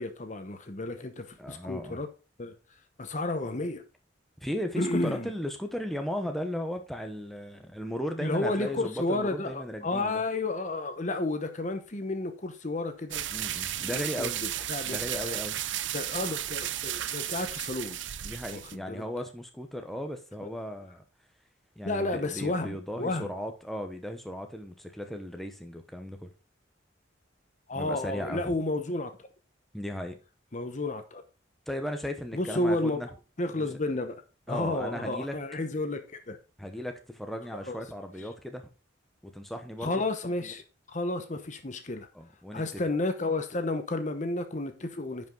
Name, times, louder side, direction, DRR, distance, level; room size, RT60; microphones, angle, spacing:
voice 1, 0.0-2.1 2.4-2.5 3.0-3.8 4.8-5.3 8.2-13.2 13.8-15.4 15.9-18.0 18.5-19.0 21.8-23.3 27.7-29.1 30.5-31.2 32.3-33.0 33.4-34.2 34.5-36.4 37.7-37.8 39.8-40.6 40.9-42.1 42.5-45.3, left 2 dB, 40° left, 0.9 m, -31 dB
voice 2, 1.4-2.0 4.4-10.2 13.3-14.4 14.9-15.6 18.2-21.0 21.8-26.3 27.7-28.6 29.7-30.2 31.7-33.1 33.6-33.7 34.5-35.4 36.6-38.7 39.2-39.9 42.1-42.8, equal, ahead, 0.9 m, -36 dB
sound 1, 13.1-18.8, right 12 dB, 75° right, 0.6 m, -34 dB
10.0 x 5.4 x 3.8 m
head